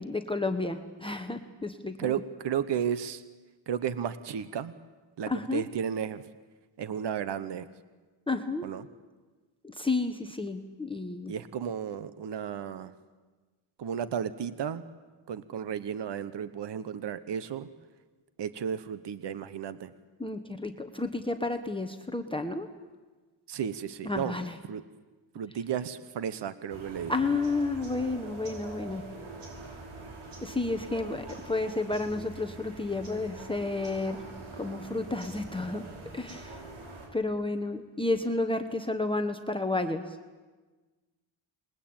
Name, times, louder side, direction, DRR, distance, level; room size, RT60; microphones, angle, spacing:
voice 1, 0.0-2.2 5.3-5.6 8.3-8.6 9.6-11.3 20.2-22.7 24.0-24.5 27.1-29.0 30.4-34.2 34.6-35.8 36.1-36.6 37.1-40.2, left 3 dB, 10° left, 5 dB, 1.3 m, -31 dB
voice 2, 2.0-3.2 3.7-4.7 5.2-6.2 6.8-7.7 8.6-8.9 11.3-12.9 13.8-14.8 15.3-17.7 18.4-19.9 23.5-24.4 24.7-24.8 25.3-27.1, right 8 dB, 55° right, 13 dB, 1.2 m, -33 dB
sound 1, 26.7-37.1, right 2 dB, 75° right, 7.0 m, -44 dB
28.0 x 21.5 x 8.9 m, 1.3 s
cardioid pair, 125°, 49 cm